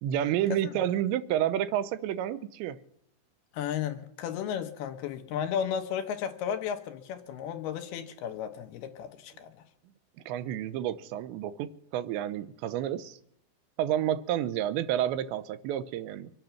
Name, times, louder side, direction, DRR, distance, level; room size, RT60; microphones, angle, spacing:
voice 1, 0.0-2.8 10.3-13.2 13.8-16.3, right 11 dB, 90° right, 3.0 m, -30 dB
voice 2, 3.5-9.6, left 8 dB, 75° left, 2.7 m, -34 dB
25.0 x 9.2 x 5.8 m
omnidirectional pair, 5.0 m